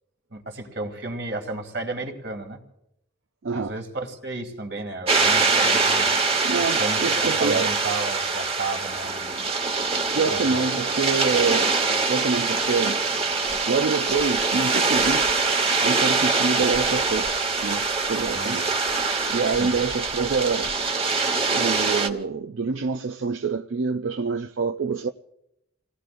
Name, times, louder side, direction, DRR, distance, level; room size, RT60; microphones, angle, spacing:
voice 1, 0.3-2.6 3.5-6.1 6.8-9.4 10.3-10.6 18.2-18.5 19.5-19.8, right 2 dB, 60° right, 2.6 m, -33 dB
voice 2, 3.4-3.7 6.4-7.8 10.1-11.8 12.1-13.4 13.7-15.4 15.8-18.7 19.3-20.7 21.5-25.1, right 4 dB, 85° right, 0.5 m, -26 dB
sound 1, 5.1-22.1, right 4 dB, 30° right, 1.3 m, -23 dB
30.0 x 18.5 x 2.6 m
head